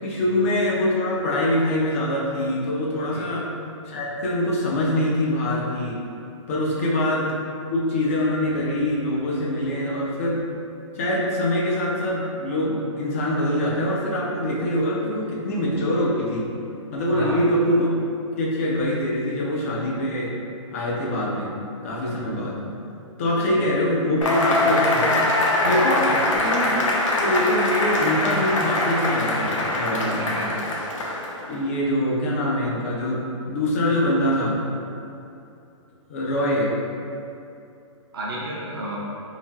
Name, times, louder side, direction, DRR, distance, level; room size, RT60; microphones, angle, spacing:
voice 1, 0.0-3.5 3.9-6.0 6.5-7.3 7.7-10.4 10.9-16.5 16.9-18.0 18.4-20.3 20.7-21.5 21.8-22.6 23.2-25.2 25.6-26.8 27.2-30.3 31.5-34.6 36.1-36.7, left 1 dB, 25° left, -3 dB, 0.3 m, -24 dB
voice 2, 17.1-17.4 23.4-23.5 26.1-26.3 30.2-30.6 38.1-39.0, right 1 dB, 45° right, -5 dB, 0.5 m, -33 dB
Cheering / Applause / Crowd, 24.2-31.5, left 1 dB, 70° left, 0.6 m, -23 dB
3.2 x 2.5 x 2.2 m, 2.6 s
hypercardioid pair, 160°, 17 cm